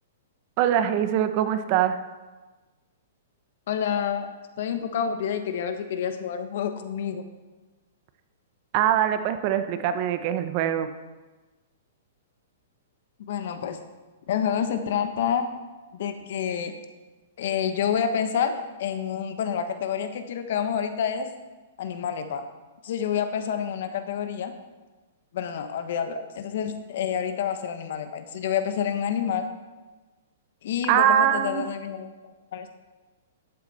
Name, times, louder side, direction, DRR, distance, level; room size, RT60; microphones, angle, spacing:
voice 1, 0.6-2.0 8.7-10.9 30.9-31.6, right 10 dB, 40° right, 10 dB, 0.8 m, -23 dB
voice 2, 3.7-4.3 4.6-7.2 13.3-13.8 14.3-15.5 15.9-16.7 17.4-21.3 21.8-22.4 22.8-24.5 25.3-29.5 30.6-32.1 32.5-32.7, left 8 dB, 60° left, 8 dB, 1.1 m, -28 dB
12.5 x 8.3 x 4.2 m, 1.3 s
hypercardioid pair, 150°, 0 cm